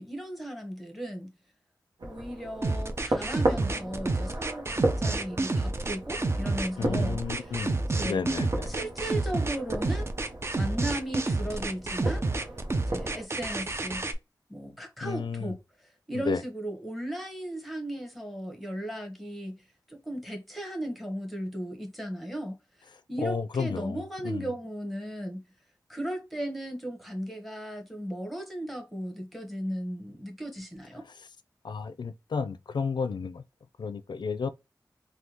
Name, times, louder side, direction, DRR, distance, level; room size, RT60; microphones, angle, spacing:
voice 1, 0.0-1.3 2.0-7.2 7.9-8.2 8.7-10.1 10.5-12.2 12.9-14.1 14.5-15.6 16.1-19.6 19.9-22.6 23.1-25.5 25.9-31.1, right 1 dB, ahead, 1.1 m, -36 dB
sound 1, 2.0-13.2, right 2 dB, 75° right, 0.9 m, -35 dB
sound 2, 2.6-14.1, right 2 dB, 35° right, 0.5 m, -29 dB
voice 2, 6.8-8.7 15.0-15.6 16.1-16.4 23.2-24.5 31.6-33.4 33.8-34.5, left 5 dB, 75° left, 0.4 m, -32 dB
3.5 x 2.3 x 2.9 m
wide cardioid pair, 80°, 8 cm